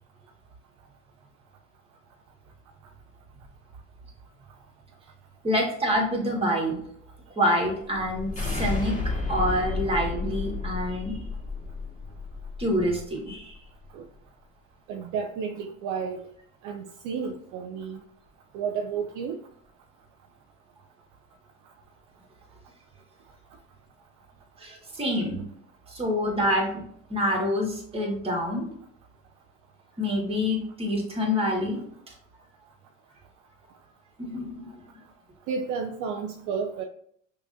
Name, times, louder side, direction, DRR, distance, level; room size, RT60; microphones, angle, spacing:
voice 1, 5.4-6.8 7.3-8.9 9.3-11.2 12.6-13.5 24.6-25.4 25.9-26.7 27.1-28.7 30.0-31.8 34.2-34.8, equal, 15° right, 1.8 m, -26 dB
sound 1, 7.9-13.1, left 3 dB, 20° left, 1.9 m, -32 dB
voice 2, 14.9-16.2 16.6-18.0 18.5-19.4 35.5-36.8, right 6 dB, 50° right, 0.5 m, -32 dB
5.9 x 3.0 x 2.6 m
hypercardioid pair, 75°, 39 cm